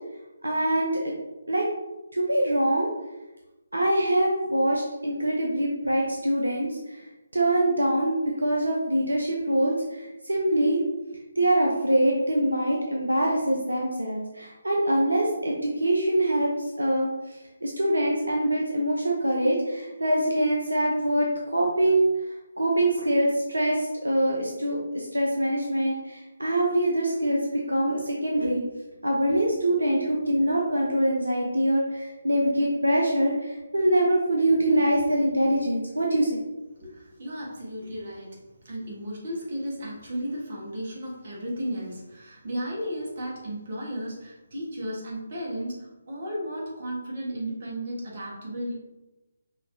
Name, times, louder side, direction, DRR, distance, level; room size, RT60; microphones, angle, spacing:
voice 1, 0.4-1.1 1.5-1.7 2.1-2.9 3.7-7.1 7.3-10.8 11.4-21.3 21.5-22.1 22.6-27.4 27.7-28.6 29.0-36.4, right 1 dB, 80° right, -2 dB, 0.8 m, -24 dB
voice 2, 36.8-48.7, equal, 45° right, -3 dB, 1.4 m, -34 dB
5.6 x 2.9 x 2.7 m, 1.0 s
figure-of-eight pair, 145°, 0 cm